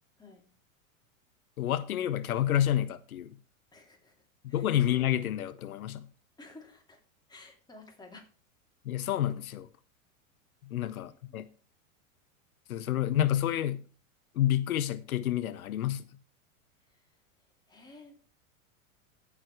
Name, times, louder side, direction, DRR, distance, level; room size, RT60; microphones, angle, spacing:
voice 1, 1.6-3.3 4.5-6.1 8.9-9.7 10.7-11.5 12.7-13.8 14.4-16.0, left 11 dB, 85° left, 0.7 m, -29 dB
voice 2, 3.7-4.7 6.4-7.0 7.3-8.3 10.7-10.9 11.3-11.4 16.9-17.1 17.7-18.2, left 3 dB, 10° left, 2.7 m, -53 dB
14.5 x 5.0 x 4.6 m
hypercardioid pair, 105°, 42 cm